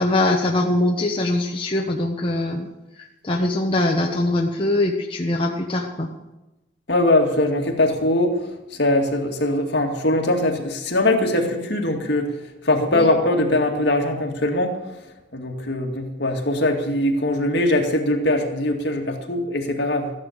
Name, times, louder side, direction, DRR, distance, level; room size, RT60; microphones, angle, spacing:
voice 1, 0.0-2.7 3.2-6.1 12.9-13.1, left 2 dB, 30° left, 0 dB, 1.1 m, -22 dB
voice 2, 6.9-8.5 8.8-12.3 12.6-14.8 15.3-20.1, left 1 dB, 60° left, 2 dB, 2.3 m, -21 dB
14.5 x 11.0 x 6.7 m, 0.96 s
head